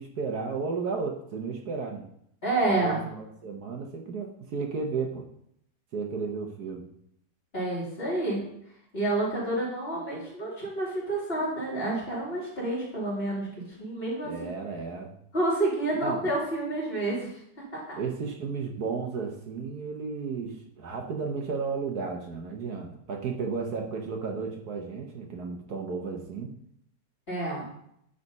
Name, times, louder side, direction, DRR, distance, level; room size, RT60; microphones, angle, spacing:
voice 1, 0.0-2.0 2.6-5.3 5.9-6.8 14.2-15.1 15.9-16.3 18.0-26.5, right 5 dB, 65° right, 3 dB, 1.5 m, -33 dB
voice 2, 2.4-3.0 7.5-8.4 8.9-13.5 13.8-14.5 15.3-17.3 27.3-27.6, right 2 dB, 35° left, -6 dB, 3.1 m, -29 dB
10.0 x 4.1 x 5.4 m, 0.71 s
omnidirectional pair, 1.9 m